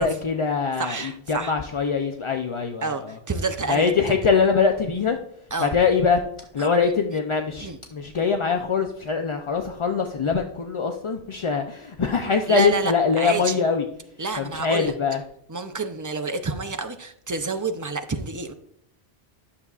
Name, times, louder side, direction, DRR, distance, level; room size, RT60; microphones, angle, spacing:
voice 1, 0.0-3.1 3.7-5.2 5.6-6.2 6.5-13.9 14.4-15.2, left 5 dB, 45° left, 5 dB, 0.4 m, -23 dB
voice 2, 0.8-1.5 2.8-3.9 5.5-5.8 6.6-6.7 7.6-7.8 12.5-13.6 14.2-14.9 15.5-18.5, right 3 dB, 30° right, 7 dB, 0.3 m, -29 dB
11.0 x 6.7 x 2.4 m, 0.69 s
omnidirectional pair, 1.0 m